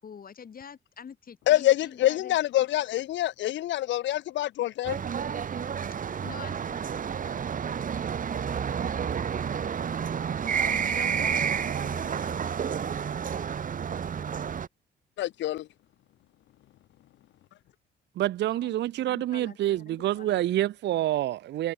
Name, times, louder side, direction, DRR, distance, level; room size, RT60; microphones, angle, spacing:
voice 1, 0.0-2.4 6.2-7.5 10.7-12.4 18.4-18.7 19.0-20.6, left 7 dB, 45° left, 5.0 m, -46 dB
voice 2, 1.5-5.0 15.2-15.7, left 14 dB, 65° left, 0.6 m, -26 dB
sound 1, 4.8-14.7, right 7 dB, 40° right, 1.2 m, -30 dB
voice 3, 18.2-21.7, right 14 dB, 60° right, 0.5 m, -27 dB
cardioid pair, 90°, 20 cm